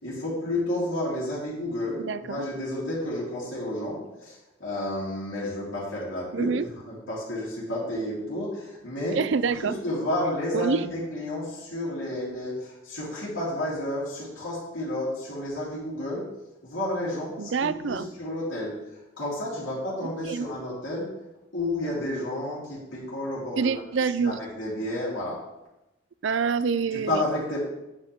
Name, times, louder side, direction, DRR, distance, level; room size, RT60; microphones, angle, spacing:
voice 1, 0.0-9.2 9.5-16.2 16.6-21.1 21.5-23.8 24.2-25.4 26.9-27.7, left 1 dB, 80° left, -8 dB, 3.3 m, -31 dB
voice 2, 2.0-2.4 6.3-6.7 9.1-9.8 10.5-10.9 17.4-18.1 20.0-20.5 23.6-24.4 26.2-27.2, right 5 dB, 70° right, 15 dB, 0.4 m, -26 dB
9.4 x 8.1 x 3.6 m, 0.96 s
head